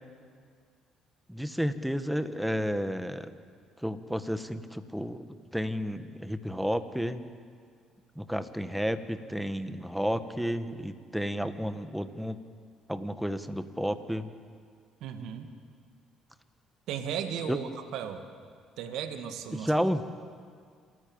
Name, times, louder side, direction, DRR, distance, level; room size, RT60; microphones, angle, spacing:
voice 1, 1.3-3.3 3.8-5.2 5.5-7.2 8.1-12.4 12.9-14.3 17.5-17.6 19.5-20.0, equal, ahead, 11 dB, 1.6 m, -31 dB
voice 2, 15.0-15.5 16.9-18.2 18.8-19.7, right 8 dB, 70° right, 7 dB, 1.8 m, -35 dB
27.5 x 14.5 x 8.8 m, 2.1 s
hypercardioid pair, 60°, 0 cm